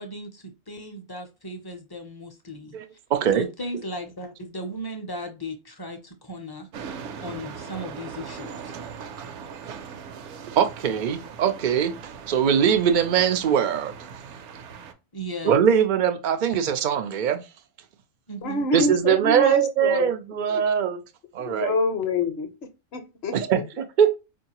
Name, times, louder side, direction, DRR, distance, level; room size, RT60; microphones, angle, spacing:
voice 1, 0.0-2.8 3.3-6.7 7.2-8.7 15.1-15.6 18.3-18.6, equal, 30° left, 0.4 m, -36 dB
voice 2, 3.1-3.5 10.3-13.9 15.4-17.4 18.7-21.0 21.3-21.7 23.3-24.2, right 8 dB, 90° right, 0.4 m, -22 dB
sound 1, 6.7-14.9, right 6 dB, 70° right, 0.9 m, -40 dB
voice 3, 18.4-20.1 20.5-20.6 21.4-22.5 22.9-23.3, left 3 dB, 60° left, 0.8 m, -27 dB
4.5 x 2.7 x 2.8 m
omnidirectional pair, 1.4 m